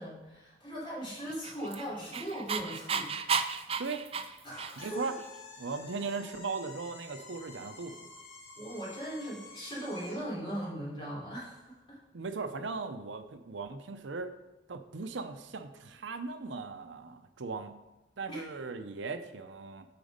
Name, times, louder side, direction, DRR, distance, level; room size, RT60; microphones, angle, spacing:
voice 1, 0.0-3.1 4.4-5.2 8.5-12.0 18.3-18.4, right 1 dB, 25° left, -7 dB, 3.3 m, -39 dB
Dog, 1.3-5.1, right 5 dB, 30° right, 0.4 m, -34 dB
sound 1, 4.8-10.3, left 3 dB, 55° left, 2.2 m, -50 dB
voice 2, 4.8-5.1 5.6-8.1 12.1-14.3 14.7-17.7 18.2-19.9, right 4 dB, 80° right, 9 dB, 0.6 m, -38 dB
9.0 x 5.1 x 5.1 m, 1.0 s
head